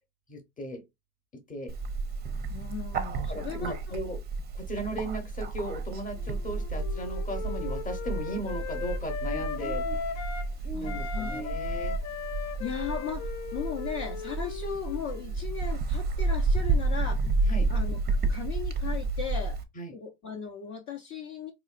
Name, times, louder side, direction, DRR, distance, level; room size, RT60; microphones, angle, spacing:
voice 1, 0.3-0.8 1.3-1.8 3.3-4.2 4.5-10.1 10.8-12.0 17.5-17.7 19.7-19.9, right 1 dB, 15° left, 1.0 m, -37 dB
Bird, 1.7-19.6, right 3 dB, 20° right, 0.6 m, -31 dB
voice 2, 2.5-3.7 10.7-11.3 12.6-17.3 17.7-19.6 19.9-21.5, left 7 dB, 40° left, 0.8 m, -37 dB
Wind instrument woodwind instrument, 6.1-10.5 10.8-15.4, left 6 dB, 75° left, 0.8 m, -38 dB
3.8 x 3.0 x 2.4 m
supercardioid pair, 120°, 46 cm